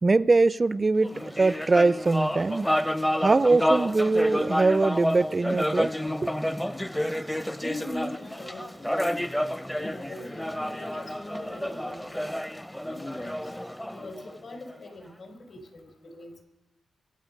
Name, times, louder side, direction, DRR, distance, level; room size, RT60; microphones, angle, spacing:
voice 1, 0.0-2.7 3.2-5.9 6.2-6.3, right 3 dB, 35° right, 0.4 m, -22 dB
sound 1, 1.0-14.7, equal, 10° left, 0.6 m, -30 dB
voice 2, 7.6-9.3 9.7-12.3 12.9-13.4 13.9-16.4, left 1 dB, 65° left, 3.9 m, -41 dB
23.0 x 8.9 x 5.2 m
cardioid pair, 60°, 0 cm